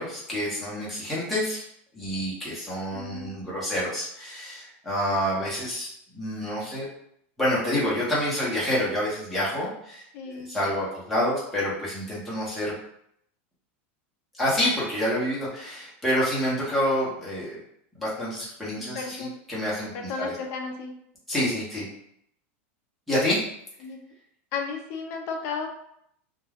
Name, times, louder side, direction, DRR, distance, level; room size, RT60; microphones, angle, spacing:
voice 1, 0.0-1.6 1.9-6.9 7.4-12.7 14.4-17.6 17.9-20.3 21.3-21.9 23.1-23.4, equal, ahead, -8 dB, 0.8 m, -28 dB
voice 2, 2.9-3.3 10.1-10.5 18.9-19.4 19.9-20.9 23.8-24.0 24.5-25.7, left 5 dB, 35° left, 2 dB, 0.5 m, -33 dB
2.3 x 2.2 x 3.3 m, 0.72 s
supercardioid pair, 175°, 7 cm